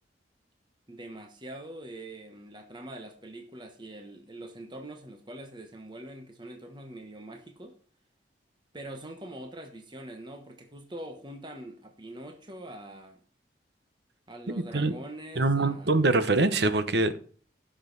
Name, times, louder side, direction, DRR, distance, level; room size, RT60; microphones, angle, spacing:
voice 1, 0.9-7.8 8.7-13.2 14.3-16.2, right 1 dB, 25° right, 1.1 m, -44 dB
voice 2, 14.5-14.9 15.4-17.2, right 2 dB, 70° right, 1.0 m, -24 dB
15.5 x 6.5 x 4.0 m
head